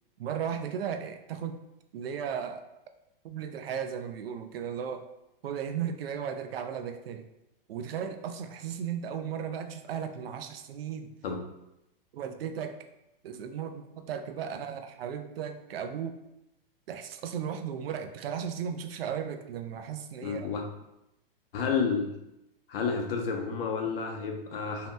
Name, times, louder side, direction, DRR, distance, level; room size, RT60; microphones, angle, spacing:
voice 1, 0.2-1.6 1.9-2.6 3.2-5.1 5.4-7.3 7.7-11.1 12.1-12.8 13.2-16.1 16.9-20.5, right 8 dB, 85° right, 7 dB, 0.4 m, -35 dB
voice 2, 20.2-20.6 21.5-22.1 22.7-24.9, left 5 dB, 75° left, 2 dB, 0.7 m, -30 dB
2.8 x 2.1 x 3.3 m, 0.89 s
hypercardioid pair, 140°, 29 cm